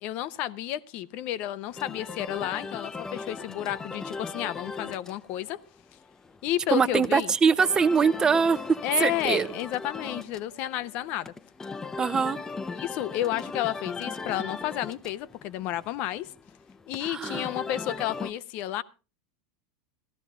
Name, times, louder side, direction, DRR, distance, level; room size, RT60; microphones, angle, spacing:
voice 1, 0.0-5.6 6.4-7.3 8.8-11.3 12.7-16.3 16.9-18.8, left 13 dB, 55° left, 0.7 m, -31 dB
sound 1, 1.7-18.3, left 4 dB, 15° left, 0.7 m, -39 dB
voice 2, 6.7-9.5 12.0-12.4 17.0-17.5, right 5 dB, 25° right, 0.8 m, -23 dB
15.0 x 12.5 x 3.7 m
hypercardioid pair, 95°, 3 cm